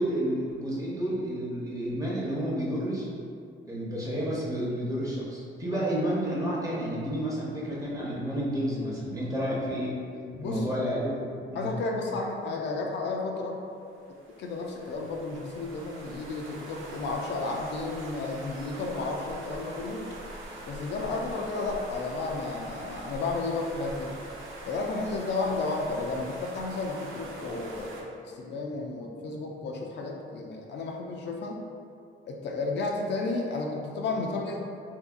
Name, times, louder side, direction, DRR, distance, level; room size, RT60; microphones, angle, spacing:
voice 1, 0.0-3.1 3.6-10.0 10.4-11.7, equal, 15° right, -6 dB, 0.7 m, -30 dB
voice 2, 10.3-10.8 11.5-13.6 14.4-20.1 20.7-24.1 24.6-31.6 32.2-34.6, left 3 dB, 60° left, 0 dB, 0.4 m, -32 dB
sound 1, 13.8-28.0, right 1 dB, 80° right, 0.5 m, -43 dB
2.7 x 2.6 x 2.4 m, 2.3 s
cardioid pair, 90°, 20 cm